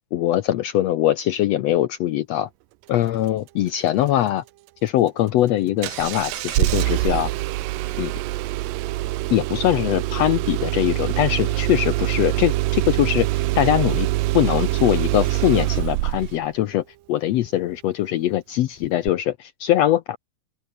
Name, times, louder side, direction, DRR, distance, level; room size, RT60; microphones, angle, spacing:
voice 1, 0.1-2.5 2.9-4.4 4.8-7.3 8.0-8.1 9.3-14.1 14.3-20.2, left 13 dB, 85° left, 1.5 m, -22 dB
Engine starting, 5.8-16.4 19.1-19.2, right 18 dB, 85° right, 2.4 m, -24 dB
open air
omnidirectional pair, 3.9 m